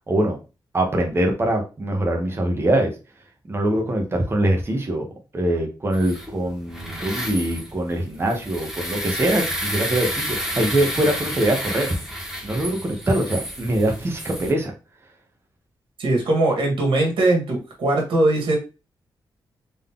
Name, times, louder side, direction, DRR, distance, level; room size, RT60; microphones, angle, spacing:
voice 1, 0.1-0.4 0.7-2.9 3.5-5.1 5.3-11.9 12.4-14.7, right 1 dB, 30° right, 1 dB, 1.3 m, -23 dB
sound 1, 5.9-14.5, equal, 5° right, 1.4 m, -30 dB
voice 2, 16.0-18.6, right 2 dB, 80° right, 0 dB, 1.9 m, -20 dB
3.9 x 3.2 x 3.7 m, 0.31 s
wide cardioid pair, 115°, 8 cm